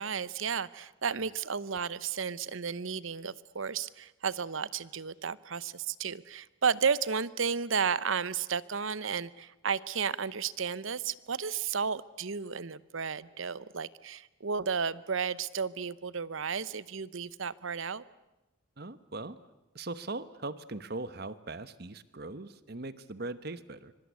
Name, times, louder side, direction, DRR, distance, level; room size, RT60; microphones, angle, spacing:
voice 1, 0.0-18.0, right 6 dB, 70° right, 18 dB, 0.8 m, -33 dB
voice 2, 18.8-19.4 19.7-23.9, right 2 dB, 50° right, 14 dB, 1.1 m, -40 dB
25.0 x 24.0 x 8.3 m, 1.0 s
head